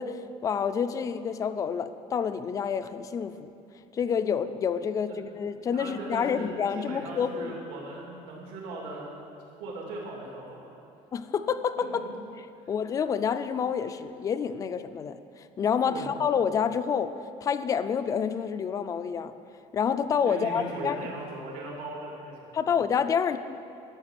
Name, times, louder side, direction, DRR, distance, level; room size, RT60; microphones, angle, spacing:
voice 1, 0.0-3.5 3.9-7.5 11.1-11.9 12.7-17.1 17.4-19.3 19.7-21.1 22.5-23.4, left 7 dB, 25° left, 11 dB, 0.4 m, -28 dB
voice 2, 5.7-9.2 9.6-10.7 12.6-12.7 15.9-16.1 20.3-22.5, right 2 dB, 85° right, -2 dB, 2.6 m, -39 dB
12.5 x 6.7 x 9.0 m, 2.5 s
cardioid pair, 180°, 14 cm